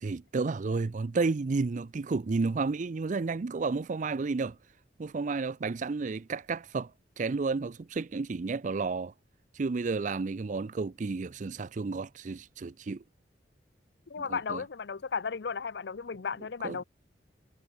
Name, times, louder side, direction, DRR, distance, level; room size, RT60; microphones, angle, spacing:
voice 1, 0.0-4.6 5.0-6.9 7.2-9.1 9.5-13.0 14.3-14.6 16.6-16.8, right 4 dB, 45° right, 0.4 m, -31 dB
voice 2, 14.1-16.8, left 5 dB, 70° left, 0.6 m, -35 dB
head